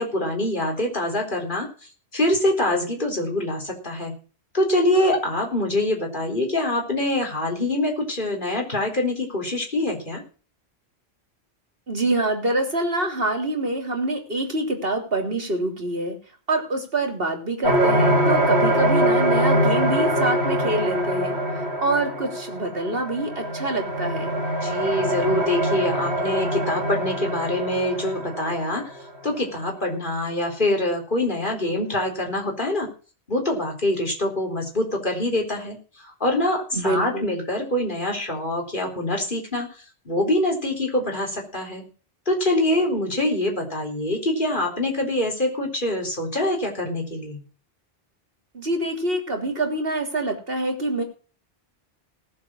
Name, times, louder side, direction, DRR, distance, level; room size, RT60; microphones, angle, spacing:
voice 1, 0.0-1.7 2.1-4.1 4.5-10.2 24.6-28.8 29.2-32.9 33.3-35.8 36.0-41.8 42.3-47.4, left 1 dB, 50° left, 1 dB, 4.3 m, -24 dB
voice 2, 11.9-16.2 16.5-24.4 36.7-37.3 48.5-51.0, right 2 dB, 60° right, 3 dB, 3.5 m, -26 dB
sound 1, 17.6-29.1, right 1 dB, 80° right, 2.9 m, -23 dB
18.5 x 7.6 x 6.3 m, 0.38 s
omnidirectional pair, 1.1 m